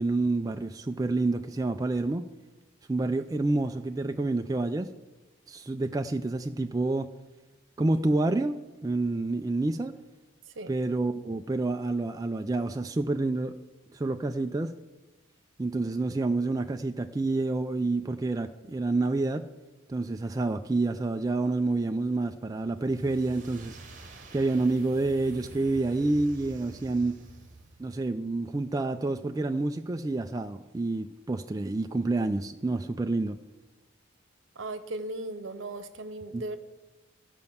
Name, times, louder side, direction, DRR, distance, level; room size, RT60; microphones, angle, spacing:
voice 1, 0.0-2.2 2.9-4.9 5.5-7.1 7.8-9.9 10.7-13.5 13.9-14.7 15.6-19.4 19.9-23.8 24.3-27.2 27.8-33.4 36.3-36.4, right 2 dB, 20° right, 6 dB, 0.3 m, -28 dB
sound 1, 22.7-28.0, right 2 dB, 40° right, 1.3 m, -48 dB
voice 2, 34.6-36.6, right 2 dB, 70° right, 9 dB, 0.9 m, -37 dB
13.5 x 5.3 x 7.1 m, 1.1 s
head